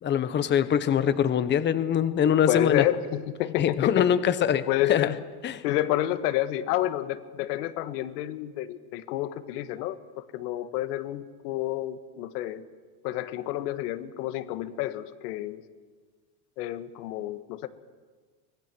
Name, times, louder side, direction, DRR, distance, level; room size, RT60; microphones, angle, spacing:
voice 1, 0.0-2.8 3.6-5.1 5.4-5.6, left 9 dB, 20° left, 12 dB, 1.0 m, -23 dB
voice 2, 2.5-3.9 4.7-5.2 5.6-12.6 13.0-15.6 16.6-17.7, left 13 dB, 75° left, 11 dB, 1.7 m, -29 dB
25.0 x 20.0 x 6.2 m, 1.5 s
supercardioid pair, 150°, 48 cm